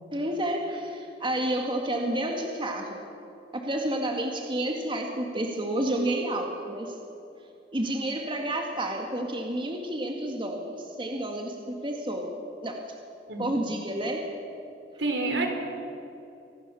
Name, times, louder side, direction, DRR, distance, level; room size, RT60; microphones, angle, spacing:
voice 1, 0.1-3.0 3.5-6.9 7.7-12.4 12.6-12.8 13.4-14.2, right 1 dB, 30° right, 2 dB, 2.0 m, -30 dB
voice 2, 13.3-13.6 15.0-15.5, right 3 dB, 75° right, 4 dB, 4.0 m, -28 dB
25.5 x 19.5 x 7.1 m, 2.7 s
head